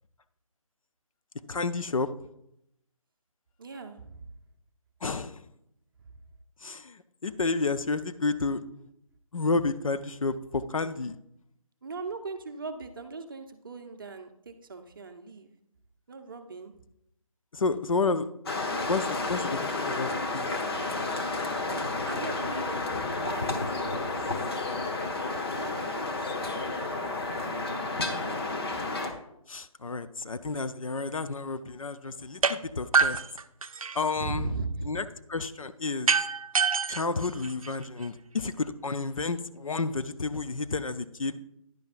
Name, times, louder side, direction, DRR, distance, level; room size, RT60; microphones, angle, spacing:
voice 1, 1.5-2.1 5.0-5.4 6.6-8.6 9.3-11.2 17.5-18.3 18.9-20.5 29.5-33.2 33.9-34.5 34.9-35.0 35.3-36.1 36.9-41.4, left 3 dB, 70° left, 10 dB, 0.6 m, -30 dB
voice 2, 3.6-4.2 11.8-15.5 16.1-16.7 22.1-22.8 23.2-23.5 23.8-27.8 28.1-28.4 28.7-28.8 34.2-34.9, right 4 dB, 35° right, 6 dB, 0.7 m, -40 dB
sound 1, 18.5-29.1, left 3 dB, 45° left, 1.0 m, -31 dB
sound 2, 32.4-32.6 32.9-34.1 36.1-38.1, right 5 dB, 70° right, 0.5 m, -26 dB
10.5 x 9.2 x 2.5 m, 0.78 s
figure-of-eight pair, 155°, 18 cm